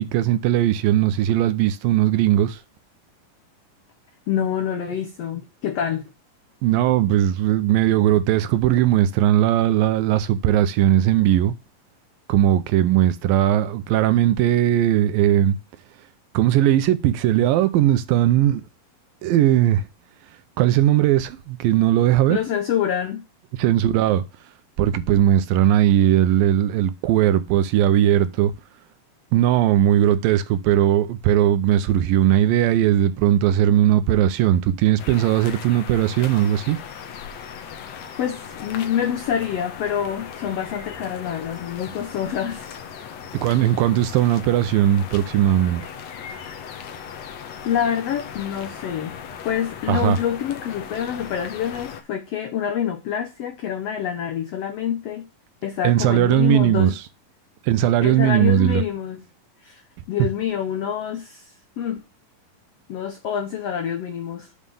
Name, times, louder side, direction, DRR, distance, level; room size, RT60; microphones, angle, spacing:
voice 1, 0.0-2.6 6.6-11.5 12.3-15.6 16.3-18.6 19.2-19.8 20.6-22.4 23.6-24.2 24.8-28.5 29.3-36.8 43.4-45.9 49.9-50.2 55.8-56.9 57.7-58.8, right 12 dB, 80° right, 2.5 m, -18 dB
voice 2, 4.3-6.0 22.3-23.2 38.2-42.7 47.6-49.2 49.4-55.2 55.6-57.0 58.0-59.2 59.6-59.8 60.1-62.0 62.9-64.5, left 9 dB, 85° left, 1.4 m, -26 dB
sound 1, 35.0-52.0, left 7 dB, 65° left, 1.9 m, -38 dB
7.5 x 4.8 x 6.8 m
omnidirectional pair, 4.1 m